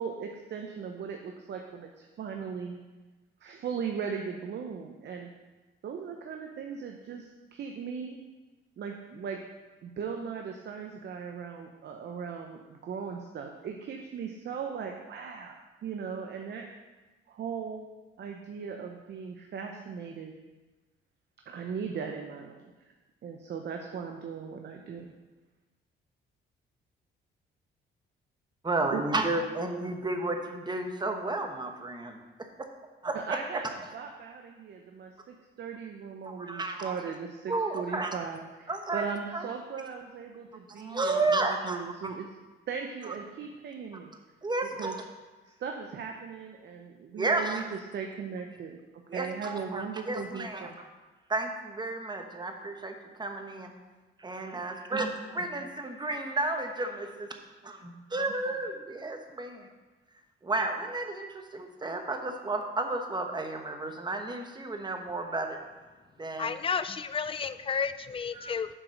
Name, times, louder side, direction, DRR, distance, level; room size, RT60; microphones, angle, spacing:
voice 1, 0.0-2.8 3.4-5.3 5.8-8.2 8.8-9.4 9.8-16.7 17.3-17.9 18.2-20.3 21.5-22.7 23.2-25.1 28.9-29.0 33.1-33.7 33.9-42.3 42.7-44.1 44.8-44.9 45.6-48.8 49.1-50.7, right 6 dB, 60° right, 3 dB, 0.8 m, -38 dB
voice 2, 28.6-32.2 33.0-33.4 36.2-37.0 37.5-38.2 38.7-39.0 39.3-39.4 40.8-42.1 44.4-45.0 47.2-47.6 49.1-50.7 51.3-53.7 54.2-57.3 57.6-59.7 60.4-65.6 66.2-66.6 68.3-68.5, right 2 dB, 20° right, 4 dB, 1.1 m, -32 dB
voice 3, 66.4-68.7, left 6 dB, 25° left, 12 dB, 0.4 m, -32 dB
7.4 x 4.9 x 6.4 m, 1.2 s
cardioid pair, 90°, 20 cm